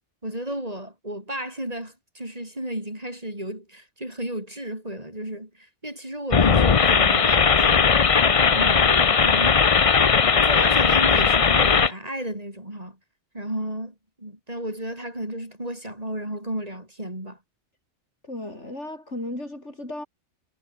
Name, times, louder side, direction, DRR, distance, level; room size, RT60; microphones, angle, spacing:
voice 1, 0.2-8.1 8.4-9.8 10.4-13.0 13.3-17.4, right 1 dB, 30° right, 7.0 m, -33 dB
sound 1, 6.3-11.9, left 6 dB, 35° left, 0.7 m, -18 dB
voice 2, 18.2-20.1, left 1 dB, 75° left, 7.9 m, -35 dB
omnidirectional pair, 1.2 m